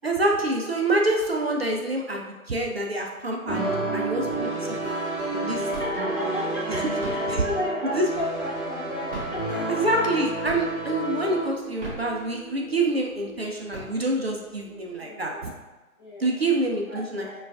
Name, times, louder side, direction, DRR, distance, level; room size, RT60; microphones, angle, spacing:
voice 1, 0.0-5.0 5.3-5.6 7.3-7.4 7.9-8.1 9.7-15.5 16.2-17.2, right 2 dB, 45° right, 0 dB, 0.4 m, -26 dB
sound 1, 3.5-14.9, right 2 dB, 35° left, 0.9 m, -32 dB
sound 2, 4.1-11.5, right 1 dB, 75° right, 0.9 m, -34 dB
sound 3, 4.3-4.8 5.2-6.2 6.8-8.6 9.0-10.1 10.4-11.0 11.6-12.7 13.2-13.3 13.5-14.4, right 3 dB, 30° right, 1.4 m, -39 dB
voice 2, 5.6-10.2 14.8-15.5 16.0-16.4 16.9-17.4, left 1 dB, 20° left, -9 dB, 0.5 m, -35 dB
5.9 x 2.3 x 2.4 m, 1.2 s
figure-of-eight pair, 145°, 43 cm